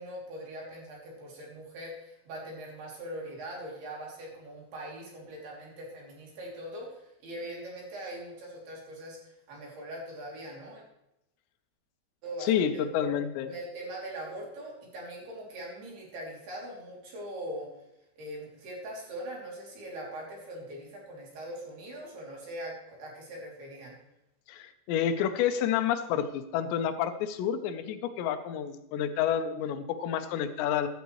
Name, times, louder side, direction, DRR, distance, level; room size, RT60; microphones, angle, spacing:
voice 1, 0.0-10.8 12.2-13.1 13.4-17.7 18.2-23.9, right 1 dB, 55° right, -2 dB, 4.6 m, -41 dB
voice 2, 12.4-13.5 24.5-30.9, left 9 dB, 75° left, 8 dB, 2.7 m, -29 dB
15.0 x 11.5 x 3.2 m, 0.87 s
omnidirectional pair, 5.8 m